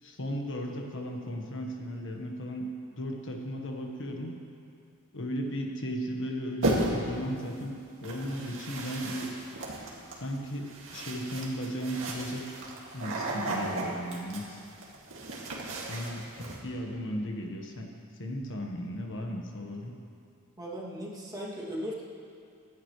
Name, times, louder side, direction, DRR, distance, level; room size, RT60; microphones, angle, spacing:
voice 1, 0.0-2.7 3.0-4.3 5.1-9.3 10.1-12.5 12.9-14.6 15.9-17.9 18.2-19.9, equal, 60° left, 1 dB, 1.4 m, -36 dB
sound 1, 6.6-7.2 8.0-16.6, right 1 dB, 65° right, 2.2 m, -35 dB
voice 2, 20.6-22.0, equal, 15° right, -6 dB, 2.5 m, -37 dB
26.0 x 11.0 x 3.3 m, 2.4 s
head